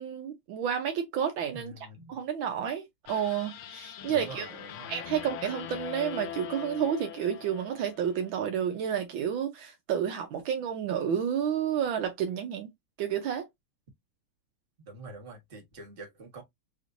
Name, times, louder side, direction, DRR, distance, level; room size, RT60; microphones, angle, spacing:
voice 1, 0.0-1.7 2.1-4.5 4.9-12.7 13.0-13.4, right 8 dB, 70° right, 1.4 m, -30 dB
voice 2, 1.5-2.2 4.0-5.0 14.9-16.4, right 2 dB, 30° right, 1.4 m, -46 dB
sound 1, 3.1-8.3, left 10 dB, 80° left, 1.6 m, -42 dB
4.9 x 3.0 x 2.5 m
omnidirectional pair, 2.3 m